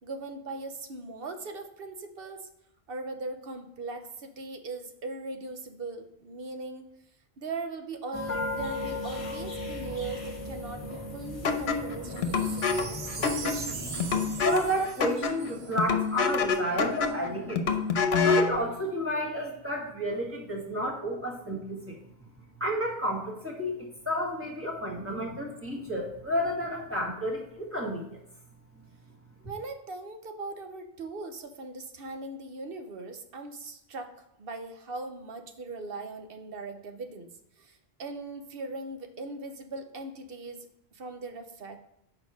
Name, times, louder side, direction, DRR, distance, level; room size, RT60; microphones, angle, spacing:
voice 1, 0.0-2.5 2.9-6.9 7.4-14.0 29.5-34.1 34.4-37.3 37.6-41.8, right 3 dB, 65° right, 6 dB, 1.0 m, -40 dB
sound 1, 8.1-14.9, left 2 dB, 30° left, 1.3 m, -37 dB
sound 2, 11.4-18.6, left 5 dB, 80° left, 1.0 m, -27 dB
Wind chime, 12.0-16.4 17.0-17.1, right 5 dB, 45° right, 0.6 m, -41 dB
voice 2, 14.4-17.8 18.2-22.0 22.6-28.2, equal, 10° right, -2 dB, 1.6 m, -31 dB
6.3 x 4.7 x 4.7 m, 0.78 s
omnidirectional pair, 1.1 m